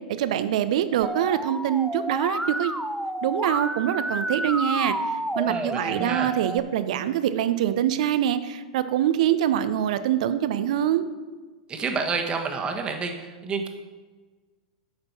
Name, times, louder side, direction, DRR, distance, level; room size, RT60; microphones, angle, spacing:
voice 1, 0.1-2.7 3.2-4.9 5.3-11.1, right 11 dB, 65° right, 12 dB, 0.6 m, -24 dB
Musical instrument, 1.0-6.6, right 1 dB, ahead, 0.4 m, -30 dB
voice 2, 5.5-6.3 11.7-13.7, right 4 dB, 25° right, 4 dB, 1.3 m, -29 dB
8.9 x 5.2 x 5.9 m, 1.4 s
hypercardioid pair, 110°, 4 cm